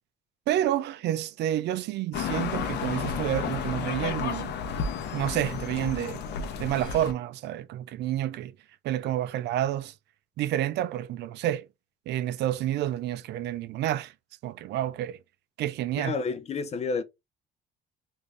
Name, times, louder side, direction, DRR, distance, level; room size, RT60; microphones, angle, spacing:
voice 1, 0.5-4.5 5.1-6.2 6.6-8.5 8.8-9.9 10.4-11.7 12.1-14.1 14.4-15.2 15.6-16.2, right 12 dB, 65° right, 0.4 m, -29 dB
sound 1, 2.1-7.1, left 7 dB, 65° left, 0.8 m, -32 dB
voice 2, 16.0-17.0, left 4 dB, 35° left, 0.5 m, -30 dB
3.3 x 2.6 x 3.5 m
cardioid pair, 110°, 19 cm